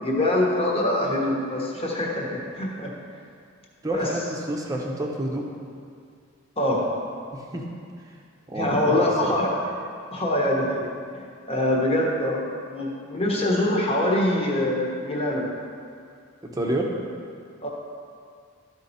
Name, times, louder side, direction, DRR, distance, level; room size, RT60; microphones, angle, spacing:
voice 1, 0.0-2.9 3.9-4.1 6.6-6.9 8.5-9.5 10.1-15.5 17.6-17.7, left 1 dB, 30° left, -2 dB, 1.3 m, -24 dB
voice 2, 3.8-5.5 7.5-7.6 8.5-9.3 16.4-16.9, right 1 dB, 20° right, -1 dB, 0.9 m, -28 dB
12.5 x 4.5 x 4.2 m, 2.3 s
head